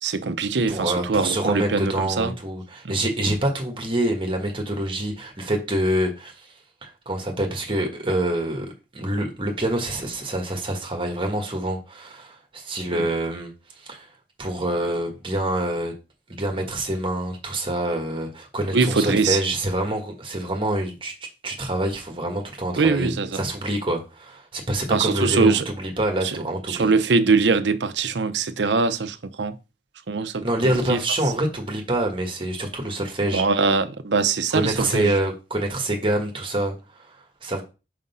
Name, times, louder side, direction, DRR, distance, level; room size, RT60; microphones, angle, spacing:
voice 1, 0.0-2.3 2.8-3.0 12.9-13.1 18.7-19.4 22.7-23.4 24.9-25.6 26.2-26.4 26.7-29.6 30.1-31.0 33.3-35.2, right 4 dB, 80° right, 0.6 m, -22 dB
voice 2, 0.7-6.5 6.8-13.5 13.8-14.1 14.4-15.9 16.3-21.1 21.4-26.9 30.4-33.4 34.5-37.6, right 1 dB, 30° right, 1.2 m, -26 dB
5.1 x 3.8 x 5.4 m
head